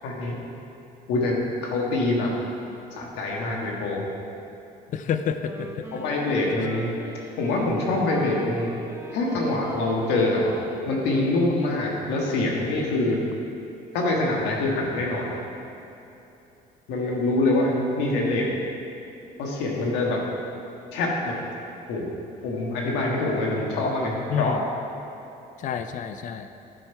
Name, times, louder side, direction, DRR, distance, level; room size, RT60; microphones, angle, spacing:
voice 1, 0.0-0.4 1.1-2.3 2.9-4.1 5.9-6.9 7.4-8.7 9.1-10.5 10.8-13.2 13.9-15.4 16.9-18.5 19.4-20.2 20.9-21.3 21.9-22.1 22.4-24.6, left 2 dB, 90° left, -2 dB, 1.7 m, -25 dB
voice 2, 4.9-5.9 24.3-24.6 25.6-26.5, left 7 dB, 50° left, 9 dB, 0.5 m, -29 dB
Wind instrument woodwind instrument, 5.4-11.8, right 2 dB, 15° right, 0.9 m, -41 dB
12.0 x 5.4 x 4.6 m, 2.9 s
cardioid pair, 110°, 17 cm